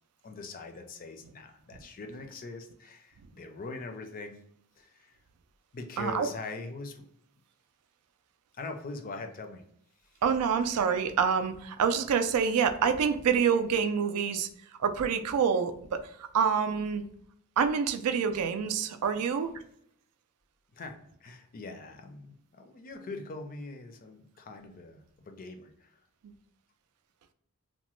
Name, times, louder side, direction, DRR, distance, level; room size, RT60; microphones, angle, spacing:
voice 1, 0.2-4.4 4.8-5.2 5.7-7.0 8.5-9.6 10.1-10.2 20.7-26.0, left 3 dB, 40° left, 6 dB, 0.4 m, -42 dB
voice 2, 6.0-6.3 10.2-14.5 14.8-17.0 17.6-19.5, right 6 dB, 80° right, 9 dB, 0.4 m, -27 dB
2.9 x 2.1 x 3.0 m, 0.69 s
head